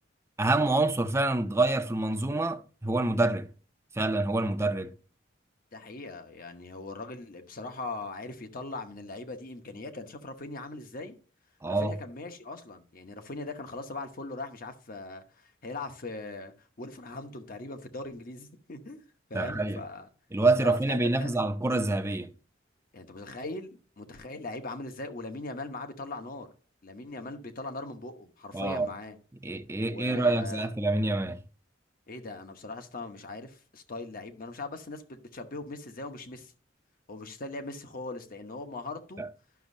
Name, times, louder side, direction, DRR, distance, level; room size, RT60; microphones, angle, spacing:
voice 1, 0.4-3.5 3.9-4.9 11.6-12.0 19.3-19.8 20.3-22.3 28.5-28.9 29.4-31.4 39.2-39.3, right 2 dB, 15° right, 0.6 m, -27 dB
voice 2, 5.7-11.2 11.7-19.0 19.3-20.1 20.6-21.4 22.9-26.5 26.8-29.2 29.9-30.7 32.1-36.5 37.1-39.2, left 2 dB, 50° left, 1.0 m, -40 dB
11.5 x 6.2 x 2.7 m
head